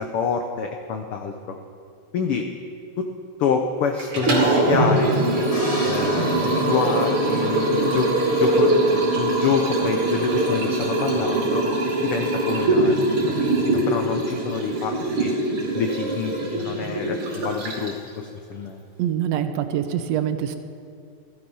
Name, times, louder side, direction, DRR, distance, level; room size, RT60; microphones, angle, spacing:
voice 1, 0.0-1.6 2.1-2.5 3.0-3.1 3.4-5.5 5.8-11.6 12.0-15.3 15.7-18.8, left 6 dB, 90° left, 4 dB, 1.2 m, -27 dB
Liquid, 4.0-18.1, right 2 dB, 45° right, 3.0 m, -22 dB
sound 1, 5.5-7.7, left 1 dB, 50° left, 3.3 m, -37 dB
voice 2, 19.0-20.6, right 10 dB, 70° right, 9 dB, 1.7 m, -24 dB
15.5 x 11.0 x 5.5 m, 2.3 s
omnidirectional pair, 3.5 m